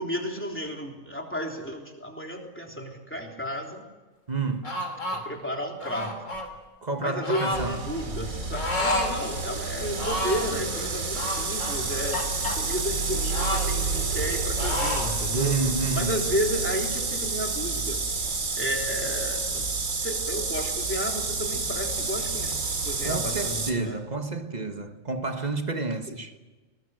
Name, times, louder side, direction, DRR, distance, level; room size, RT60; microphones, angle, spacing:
voice 1, 0.0-3.8 5.1-6.1 7.0-12.2 12.5-15.5 15.9-18.0 18.6-22.6 22.8-24.0, equal, 10° left, 3.4 m, -32 dB
voice 2, 4.3-4.7 6.8-7.9 15.3-16.2 23.0-26.3, right 4 dB, 35° right, 1.5 m, -30 dB
sound 1, 4.6-5.2 5.8-6.5 7.2-7.7 8.5-9.1 9.4-9.5 9.9-10.5 11.1-12.6 13.3-14.3 14.6-15.2, left 1 dB, 65° left, 3.7 m, -30 dB
sound 2, 7.5-23.7, right 3 dB, 85° right, 2.7 m, -29 dB
20.5 x 20.0 x 7.8 m
omnidirectional pair, 1.4 m